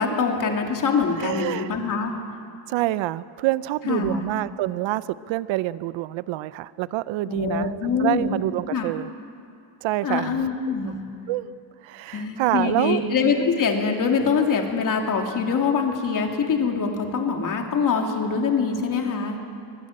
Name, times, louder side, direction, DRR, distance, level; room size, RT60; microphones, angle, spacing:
voice 1, 0.0-2.1 3.9-4.3 7.2-8.4 8.7-8.9 10.0-11.0 12.1-19.4, left 5 dB, 45° left, 2 dB, 3.0 m, -24 dB
voice 2, 1.2-1.7 2.7-9.1 9.8-10.9 11.3-11.5 11.8-13.0, right 16 dB, 85° right, 16 dB, 0.7 m, -27 dB
24.0 x 19.5 x 8.7 m, 2.4 s
cardioid pair, 140°, 45 cm